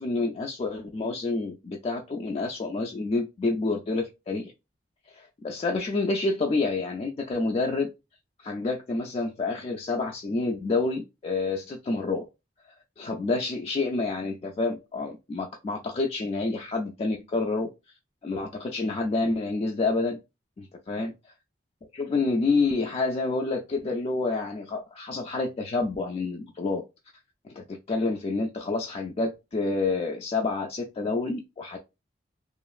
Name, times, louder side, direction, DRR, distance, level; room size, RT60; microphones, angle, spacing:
voice 1, 0.0-4.5 5.1-7.9 8.4-12.2 13.0-17.7 18.2-20.2 20.6-21.1 21.9-26.8 27.5-31.8, left 3 dB, 35° left, 0.3 m, -28 dB
2.9 x 2.4 x 2.3 m
head